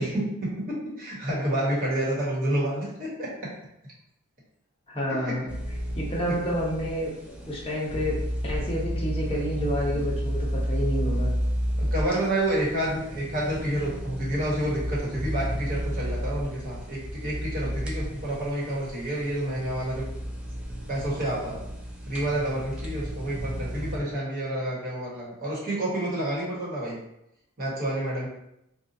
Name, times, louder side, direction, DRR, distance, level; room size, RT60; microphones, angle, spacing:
voice 1, 0.0-3.5 5.1-5.4 6.3-6.4 9.9-10.0 11.8-20.1 20.9-21.6 22.1-27.0 27.6-28.3, right 1 dB, 45° right, -6 dB, 1.2 m, -29 dB
voice 2, 4.9-5.5 6.0-8.2 8.4-11.3, equal, 25° left, -4 dB, 0.7 m, -29 dB
sound 1, 5.5-24.0, equal, 5° right, 0.4 m, -32 dB
4.1 x 2.3 x 2.6 m, 0.82 s
head